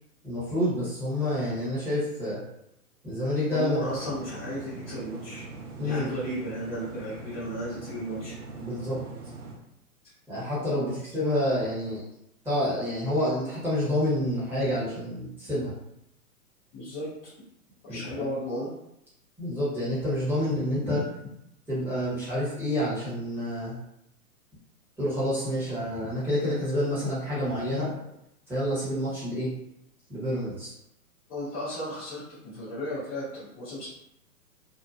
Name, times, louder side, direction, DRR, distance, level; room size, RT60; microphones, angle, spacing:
voice 1, 0.2-2.4 3.0-3.9 5.8-6.1 8.6-9.0 10.3-12.0 12.4-15.7 17.9-18.3 19.4-21.0 21.7-23.7 25.0-27.9 28.5-29.5 30.1-30.7, left 1 dB, 5° right, -12 dB, 0.9 m, -28 dB
voice 2, 3.5-5.4 5.8-8.3 10.8-10.9 16.7-17.1 17.8-18.7 20.9-21.0 31.3-33.9, equal, 10° left, -15 dB, 0.4 m, -34 dB
sound 1, 3.8-9.5, right 3 dB, 75° right, 0.8 m, -42 dB
2.6 x 2.2 x 2.4 m, 0.79 s
hypercardioid pair, 125°, 46 cm